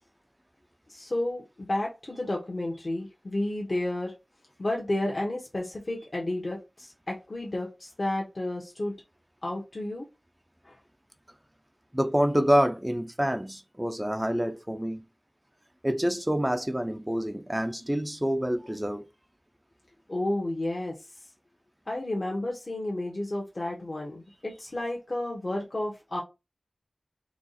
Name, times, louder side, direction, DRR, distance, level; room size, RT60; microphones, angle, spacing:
voice 1, 0.9-4.2 4.6-9.0 9.4-10.1 10.6-10.8 20.1-20.9 21.9-26.2, left 1 dB, 55° left, 1.4 m, -31 dB
voice 2, 11.9-15.0 15.8-19.1, equal, 15° right, 0.5 m, -27 dB
4.8 x 2.5 x 4.1 m
wide cardioid pair, 50°, 0 cm